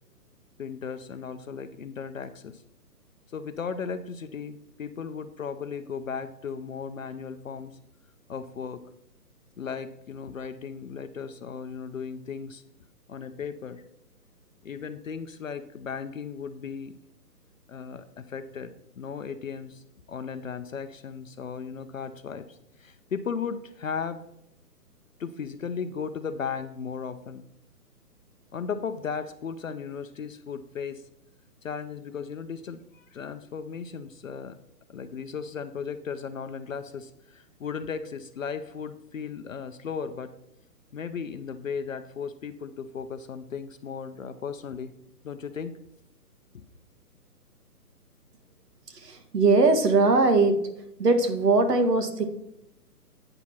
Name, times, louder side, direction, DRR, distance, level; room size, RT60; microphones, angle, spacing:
voice 1, 0.6-2.6 3.3-7.8 8.3-8.8 9.6-12.6 13.1-13.8 14.6-16.9 17.7-24.2 25.2-27.4 28.5-31.0 31.6-34.6 34.9-40.3 40.9-44.9 45.2-45.7 46.5-46.6, left 6 dB, 55° left, 10 dB, 0.6 m, -36 dB
voice 2, 48.9-50.7 51.0-52.2, right 3 dB, 75° right, 8 dB, 1.6 m, -21 dB
8.8 x 6.0 x 4.2 m, 0.82 s
hypercardioid pair, 170°, 48 cm